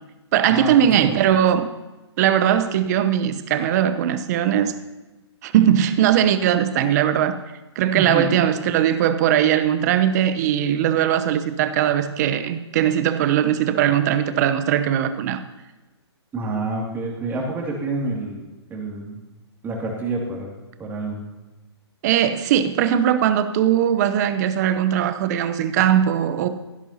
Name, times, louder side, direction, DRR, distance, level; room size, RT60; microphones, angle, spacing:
voice 1, 0.3-1.7 2.2-4.7 5.4-7.4 7.8-15.4 22.0-26.5, right 10 dB, 40° right, 0.8 m, -19 dB
voice 2, 8.0-8.3 16.3-19.2 19.6-20.5 20.8-21.2, right 2 dB, 15° right, 2.4 m, -28 dB
16.5 x 11.0 x 2.8 m
hypercardioid pair, 135°, 14 cm